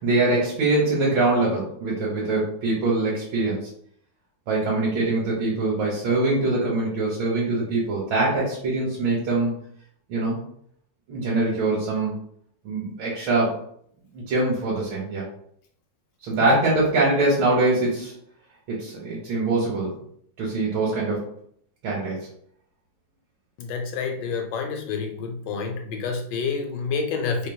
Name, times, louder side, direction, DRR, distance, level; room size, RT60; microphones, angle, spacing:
voice 1, 0.0-3.6 4.5-9.5 10.1-10.4 11.1-12.2 12.6-13.6 14.1-15.2 16.2-18.1 18.7-20.0 20.4-21.3 21.8-22.3, right 2 dB, 75° right, -4 dB, 1.6 m, -23 dB
voice 2, 16.4-16.9 23.6-27.5, left 5 dB, 75° left, 4 dB, 1.1 m, -28 dB
4.4 x 3.1 x 2.2 m, 0.66 s
omnidirectional pair, 2.2 m